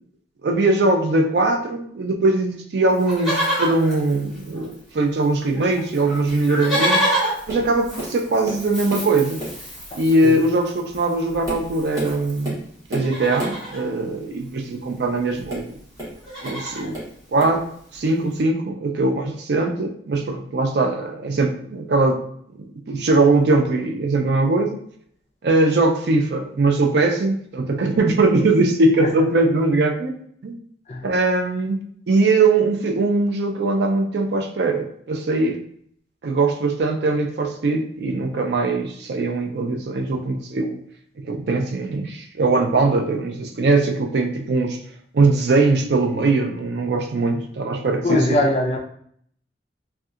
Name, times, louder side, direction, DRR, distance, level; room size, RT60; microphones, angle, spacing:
voice 1, 0.4-7.0 7.5-9.4 9.9-12.6 12.9-15.8 16.4-17.0 17.3-17.7 17.9-22.2 22.6-24.8 25.4-30.1 30.4-30.6 31.0-35.6 36.2-40.8 41.2-44.8 45.1-48.3, right 2 dB, 65° right, 3 dB, 0.4 m, -21 dB
Livestock farm animals working animals, 2.9-5.0 5.2-5.3 5.5-12.5 12.9-13.8 15.1-15.2 15.3-15.6 16.0-16.9 17.5-17.6, equal, ahead, 1.3 m, -28 dB
Tap, 7.5-7.7 8.0-9.1 9.4-9.7 10.4-10.5 11.1-13.7 15.4-16.6 16.9-17.6 18.4-18.5, right 1 dB, 20° right, 0.9 m, -32 dB
voice 2, 48.0-48.8, left 1 dB, 35° left, 1 dB, 0.4 m, -20 dB
2.7 x 2.3 x 2.4 m, 0.63 s
head